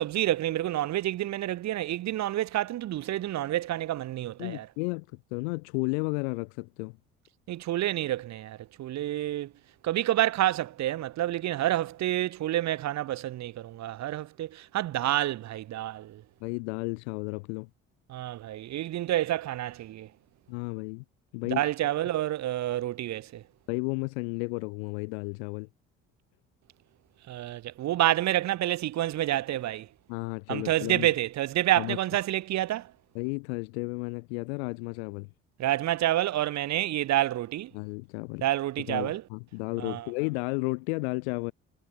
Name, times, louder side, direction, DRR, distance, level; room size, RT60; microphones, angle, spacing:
voice 1, 0.0-4.7 7.5-9.5 9.8-16.2 18.1-20.1 21.5-23.4 27.3-29.9 30.5-32.9 35.6-37.7 38.4-39.2 39.8-40.1, right 13 dB, 55° right, 0.9 m, -28 dB
voice 2, 4.4-7.0 16.4-17.7 20.5-21.0 21.3-21.6 23.7-25.7 30.1-31.1 31.8-32.0 33.1-35.3 37.7-38.4 38.9-41.5, left 32 dB, 85° left, 0.8 m, -33 dB
supercardioid pair, 70°, 32 cm